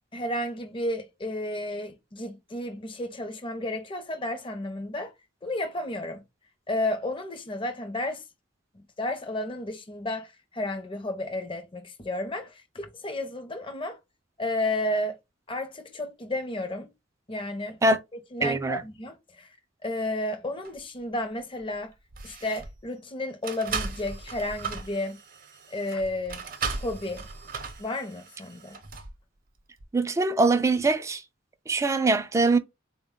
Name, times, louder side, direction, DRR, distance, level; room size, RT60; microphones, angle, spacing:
voice 1, 0.1-5.1 5.4-6.2 6.7-8.2 8.7-14.0 14.4-15.2 15.5-16.9 17.3-17.8 18.3-19.6 19.8-21.9 22.2-25.2 25.7-26.4 26.7-27.3 27.8-28.8, left 1 dB, 25° left, 0.6 m, -32 dB
voice 2, 18.4-18.8 29.9-31.2 31.7-32.6, right 3 dB, 15° right, 0.4 m, -22 dB
sound 1, 20.6-20.8 21.6-21.8 22.1-22.8 23.4-29.1 29.8-29.9, right 5 dB, 45° right, 0.7 m, -37 dB
3.7 x 2.2 x 3.6 m
head